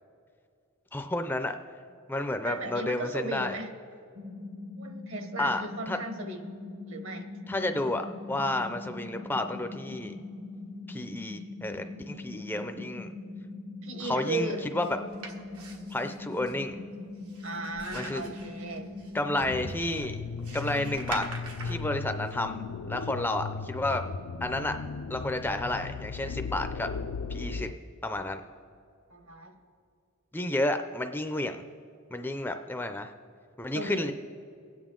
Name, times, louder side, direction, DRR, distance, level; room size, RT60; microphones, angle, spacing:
voice 1, 0.9-1.6 2.1-3.6 5.4-6.0 7.5-8.0 8.3-10.2 10.9-13.1 14.0-14.8 15.9-16.8 17.9-18.2 19.1-20.2 20.5-21.3 21.6-24.0 24.4-24.8 25.1-26.9 27.3-27.7 28.0-28.4 30.3-31.6 32.1-33.1 33.6-34.1, left 1 dB, 10° left, 7 dB, 0.4 m, -31 dB
voice 2, 2.4-3.7 4.8-6.4 6.9-7.3 13.8-14.7 17.4-18.9 29.1-29.6 33.7-34.1, right 2 dB, 60° right, 6 dB, 1.2 m, -36 dB
sound 1, 4.2-19.7, left 2 dB, 35° right, 0.6 m, -42 dB
sound 2, 14.8-22.4, right 3 dB, 90° right, 1.4 m, -45 dB
sound 3, 19.4-27.7, left 4 dB, 80° left, 0.4 m, -37 dB
23.5 x 9.2 x 3.7 m, 2.4 s
head